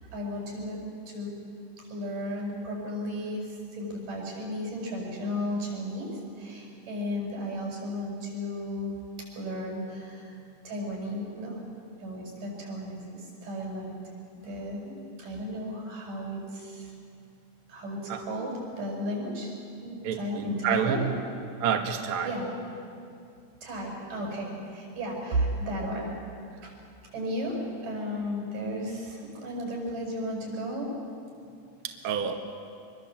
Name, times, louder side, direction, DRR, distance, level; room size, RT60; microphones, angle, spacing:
voice 1, 0.1-0.8 1.1-1.4 1.8-6.1 6.4-9.0 9.3-10.3 10.6-11.6 12.0-14.0 14.3-16.9 17.7-18.5 18.8-21.0 22.2-22.5 23.6-26.2 26.6-26.7 27.1-31.0, equal, 90° right, -1 dB, 7.6 m, -34 dB
voice 2, 20.0-21.1 21.6-22.3 31.8-32.3, right 8 dB, 50° right, 4 dB, 1.9 m, -28 dB
25.5 x 22.0 x 7.6 m, 2.5 s
omnidirectional pair, 3.6 m